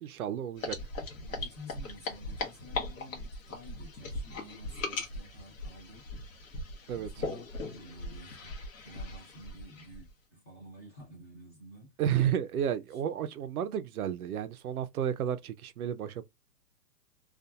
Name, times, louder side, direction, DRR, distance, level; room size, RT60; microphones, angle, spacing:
voice 1, 0.0-0.8 6.9-7.1 12.0-16.2, right 9 dB, 65° right, 0.5 m, -32 dB
weissbier-bottle opening, 0.6-10.1, left 2 dB, 55° left, 1.0 m, -39 dB
voice 2, 1.1-6.0 6.9-8.5 8.8-11.9 12.9-13.0, equal, 10° left, 0.6 m, -51 dB
2.7 x 2.4 x 2.2 m
hypercardioid pair, 160°, 49 cm